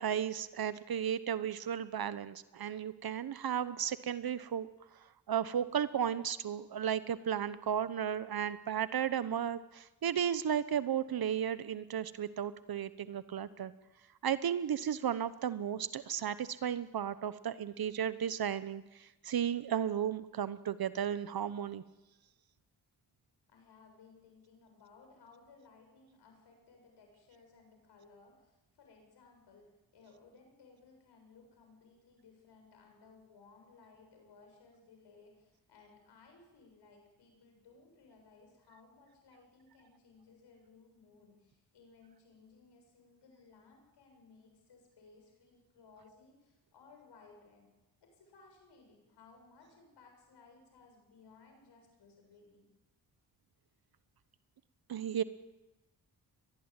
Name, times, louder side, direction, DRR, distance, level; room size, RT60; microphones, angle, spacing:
voice 1, 0.0-4.7 5.3-13.7 14.2-21.8 54.9-55.2, right 9 dB, 65° right, 14 dB, 1.1 m, -34 dB
voice 2, 23.5-47.7 48.0-52.7, left 4 dB, 85° left, 3 dB, 7.4 m, -61 dB
23.0 x 19.5 x 9.0 m, 1.0 s
cardioid pair, 65°, 40 cm